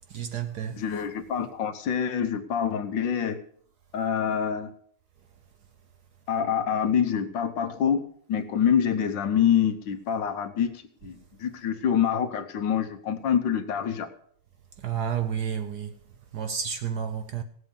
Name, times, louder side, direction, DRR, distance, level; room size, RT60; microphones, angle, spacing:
voice 1, 0.1-0.8 14.8-15.9 16.3-17.4, right 8 dB, 65° right, 1.1 m, -30 dB
voice 2, 0.8-3.4 3.9-4.7 6.3-8.0 8.3-14.1, left 8 dB, 65° left, 1.5 m, -26 dB
17.0 x 8.0 x 5.3 m
omnidirectional pair, 2.3 m